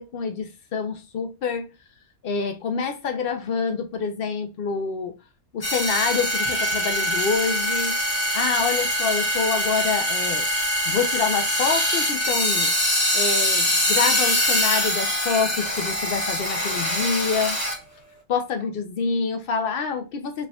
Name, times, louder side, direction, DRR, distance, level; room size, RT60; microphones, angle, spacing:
voice 1, 0.0-1.7 2.2-5.1 5.5-8.0 8.3-10.5 10.9-12.7 13.1-17.6 18.3-20.5, left 5 dB, 70° left, 0.5 m, -26 dB
sound 1, 5.6-17.8, equal, 25° left, 1.7 m, -23 dB
4.9 x 3.5 x 2.3 m
omnidirectional pair, 1.6 m